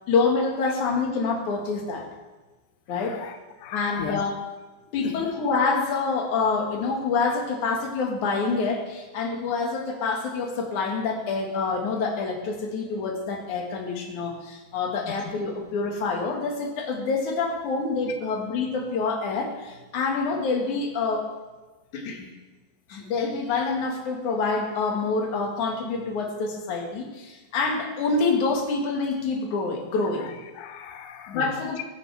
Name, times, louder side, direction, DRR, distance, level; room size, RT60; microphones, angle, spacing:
voice 1, 0.1-2.1 2.9-3.2 3.7-4.4 4.9-21.3 21.9-22.3 22.9-30.3 31.3-31.8, left 4 dB, 55° left, 1 dB, 2.7 m, -27 dB
voice 2, 2.9-4.3 5.0-5.3 15.0-15.1 30.2-31.7, left 9 dB, 90° left, 7 dB, 1.9 m, -38 dB
22.0 x 9.9 x 3.5 m, 1.2 s
omnidirectional pair, 5.1 m